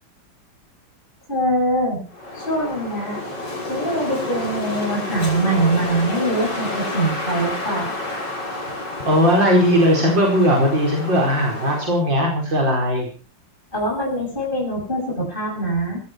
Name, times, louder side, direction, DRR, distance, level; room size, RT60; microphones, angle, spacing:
voice 1, 1.3-2.0 2.3-3.2 3.7-8.0 13.7-16.0, right 1 dB, 25° left, -2 dB, 7.3 m, -23 dB
Wind, 2.1-12.0, left 1 dB, 65° left, 6.4 m, -30 dB
voice 2, 9.1-13.1, equal, 80° right, 1 dB, 5.3 m, -18 dB
19.5 x 16.0 x 4.5 m, 0.39 s
omnidirectional pair, 2.0 m